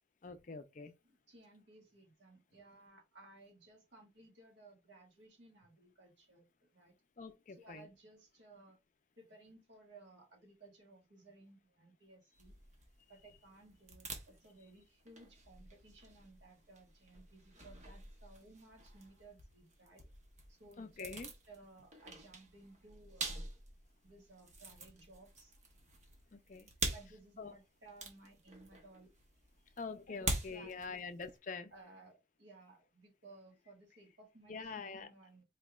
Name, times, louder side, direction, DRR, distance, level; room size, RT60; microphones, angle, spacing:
voice 1, 0.2-0.9 7.2-7.9 20.8-21.3 26.3-26.7 27.4-27.6 29.8-31.7 34.5-35.1, left 4 dB, 40° left, 0.4 m, -45 dB
voice 2, 1.0-7.0 7.5-8.8 9.2-12.6 13.1-20.0 20.5-21.2 21.5-23.5 24.0-25.5 26.9-29.1 29.7-29.8 30.1-31.0 31.7-35.4, right 2 dB, 65° right, 1.5 m, -59 dB
sound 1, 12.3-31.4, right 2 dB, 35° right, 0.9 m, -46 dB
4.3 x 3.2 x 2.4 m
head